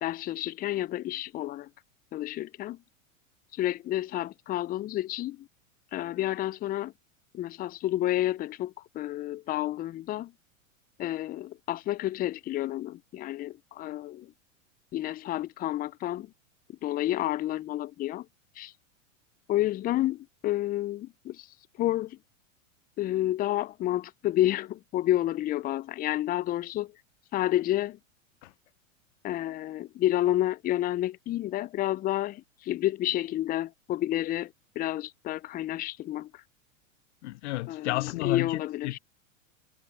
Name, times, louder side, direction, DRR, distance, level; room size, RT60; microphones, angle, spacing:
voice 1, 0.0-1.7 2.1-2.8 3.5-5.5 5.9-6.9 7.3-10.3 11.0-14.3 14.9-16.3 16.8-18.3 18.6-18.7 19.5-21.5 21.8-22.2 23.0-26.9 27.3-28.0 29.2-36.4 37.7-39.0, left 14 dB, 20° left, 0.6 m, -30 dB
voice 2, 37.2-39.0, left 19 dB, 60° left, 0.8 m, -32 dB
hypercardioid pair, 100°, 39 cm